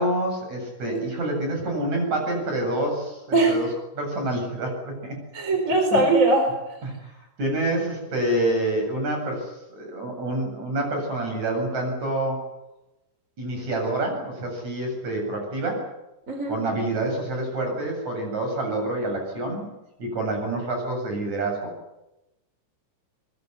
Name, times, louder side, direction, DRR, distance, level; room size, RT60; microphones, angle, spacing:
voice 1, 0.0-3.7 3.9-5.2 5.9-6.1 6.8-12.4 13.4-15.8 16.5-19.7 20.0-21.7, right 1 dB, 55° right, 2 dB, 9.4 m, -27 dB
voice 2, 5.3-6.5 16.3-16.6, right 2 dB, 20° right, 4 dB, 4.4 m, -20 dB
23.0 x 21.5 x 9.6 m, 0.96 s
omnidirectional pair, 3.9 m